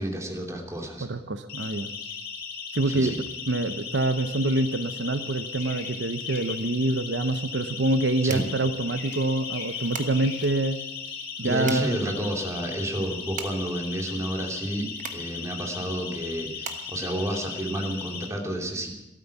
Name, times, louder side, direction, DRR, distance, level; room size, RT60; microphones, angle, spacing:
voice 1, 0.0-1.1 2.9-3.2 8.2-8.4 11.4-18.9, right 1 dB, 15° right, 1 dB, 2.7 m, -30 dB
voice 2, 1.0-1.9 2.7-3.1 3.5-10.8 11.4-11.9, right 2 dB, 80° right, 10 dB, 0.8 m, -26 dB
Siren, 1.5-18.3, left 6 dB, 60° left, 2.3 m, -37 dB
Bird vocalization bird call bird song, 1.6-2.2 2.8-3.1 3.6-3.8 4.3-4.6 4.9-6.7 7.2-7.9 8.2-11.4 12.1-12.3, left 6 dB, 85° left, 2.0 m, -43 dB
sound 1, 6.9-18.0, right 6 dB, 45° right, 1.3 m, -43 dB
13.0 x 13.0 x 7.2 m, 0.94 s
head